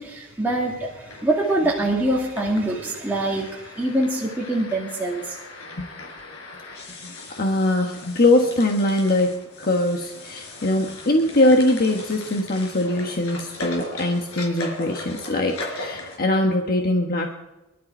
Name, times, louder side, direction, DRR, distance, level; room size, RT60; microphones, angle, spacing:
voice 1, 0.0-5.4, right 1 dB, 10° right, -4 dB, 2.1 m, -24 dB
sound 1, 0.9-16.2, left 2 dB, 85° left, 4.4 m, -39 dB
voice 2, 7.4-17.3, left 1 dB, 45° left, 2 dB, 1.3 m, -22 dB
23.5 x 12.0 x 4.4 m, 1.0 s
head